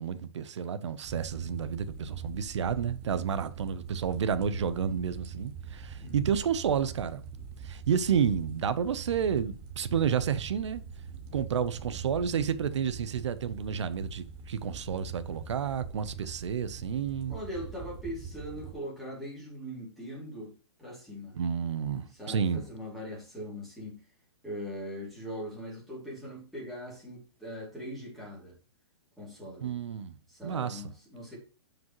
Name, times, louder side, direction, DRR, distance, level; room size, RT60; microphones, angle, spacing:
voice 1, 0.0-7.2 7.6-10.8 11.3-17.4 21.3-22.6 29.6-30.2 30.4-30.8, right 7 dB, 90° right, 0.8 m, -30 dB
sound 1, 1.0-18.7, right 6 dB, 20° right, 0.9 m, -43 dB
voice 2, 17.3-20.5 20.8-21.3 22.1-24.0 24.4-28.5 29.2-29.7 30.3-31.4, equal, ahead, 2.8 m, -41 dB
12.0 x 5.2 x 3.1 m
hypercardioid pair, 175°, 14 cm